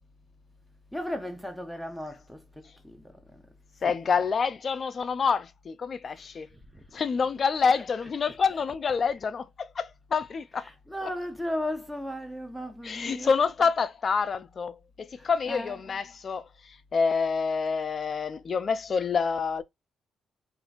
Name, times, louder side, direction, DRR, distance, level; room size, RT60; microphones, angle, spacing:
voice 1, 0.9-3.5 3.8-3.9 6.1-6.3 6.5-6.9 8.3-8.4 10.6-13.3 15.2-15.8, left 1 dB, ahead, 0.7 m, -36 dB
voice 2, 3.8-6.5 6.9-10.7 11.0-11.1 12.8-19.6, left 5 dB, 45° left, 0.3 m, -27 dB
2.9 x 2.5 x 2.4 m
cardioid pair, 90°, 0 cm